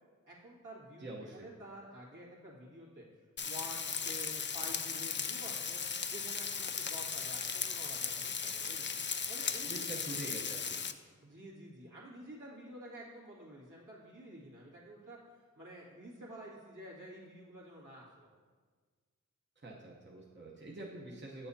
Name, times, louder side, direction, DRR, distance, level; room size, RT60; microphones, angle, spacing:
voice 1, 0.2-1.1 1.3-8.8 9.3-9.9 11.2-18.3, right 1 dB, 65° right, -6 dB, 2.1 m, -50 dB
voice 2, 1.0-1.5 9.7-10.8 19.6-21.5, right 2 dB, 35° right, -4 dB, 0.9 m, -45 dB
Frying (food), 3.4-10.9, left 6 dB, 35° left, 0.4 m, -37 dB
8.5 x 6.8 x 2.8 m, 1.5 s
cardioid pair, 45°, 33 cm